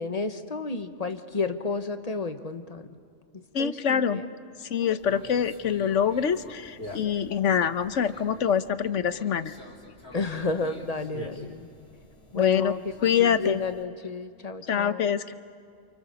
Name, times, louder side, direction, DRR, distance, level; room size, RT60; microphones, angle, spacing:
voice 1, 0.0-2.8 3.3-4.3 10.1-11.7 12.3-12.8 13.4-15.2, left 4 dB, 30° left, 9 dB, 1.2 m, -32 dB
voice 2, 3.5-4.2 4.6-9.5 12.3-12.7 13.0-13.6 14.7-15.3, left 8 dB, 70° left, 12 dB, 1.2 m, -25 dB
Conversation, 5.0-13.8, left 1 dB, 50° left, 3.7 m, -46 dB
29.0 x 28.5 x 7.0 m, 2.2 s
omnidirectional pair, 1.3 m